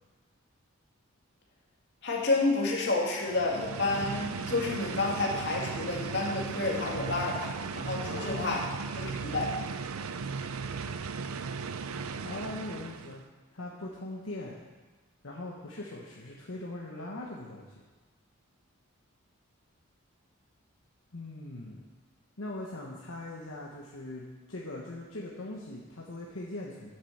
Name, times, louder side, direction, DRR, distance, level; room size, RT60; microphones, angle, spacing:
voice 1, 2.0-8.6 8.9-9.6, left 3 dB, 55° left, -2 dB, 2.3 m, -30 dB
sound 1, 3.2-13.2, right 5 dB, 85° right, 0.5 m, -37 dB
voice 2, 8.0-8.6 12.2-13.2 13.5-14.6 15.2-17.7 21.1-21.8 22.4-26.9, left 2 dB, 70° left, -3 dB, 1.3 m, -40 dB
11.0 x 7.5 x 6.5 m, 1.3 s
head